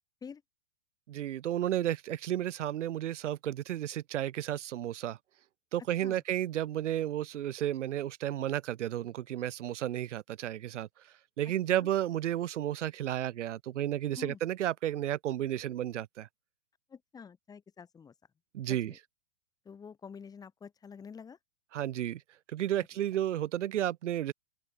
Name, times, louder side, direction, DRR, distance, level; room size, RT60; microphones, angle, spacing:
voice 1, 1.1-5.2 5.7-10.9 11.4-16.3 18.5-18.9 21.7-22.2 22.5-24.3, right 12 dB, 85° right, 1.0 m, -32 dB
voice 2, 16.9-18.1 18.7-19.0 19.6-21.4, left 6 dB, 10° left, 3.0 m, -47 dB
open air
hypercardioid pair, 160°, 35 cm